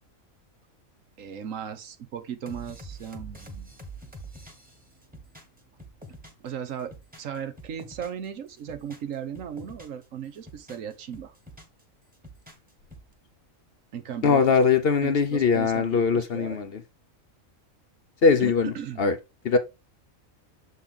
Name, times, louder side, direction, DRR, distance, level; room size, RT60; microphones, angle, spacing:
voice 1, 1.2-3.7 6.4-6.9 7.2-11.3 13.9-14.6 15.0-16.6 18.4-19.0, right 8 dB, 70° right, 1.3 m, -36 dB
sound 1, 2.5-6.5 6.8-8.3 8.6-10.0 10.4-11.8 12.1-13.1, right 2 dB, 5° right, 1.3 m, -45 dB
voice 2, 14.2-16.7 18.2-18.7 19.0-19.2 19.4-19.6, left 5 dB, 55° left, 0.8 m, -21 dB
7.2 x 4.1 x 3.7 m
omnidirectional pair, 1.4 m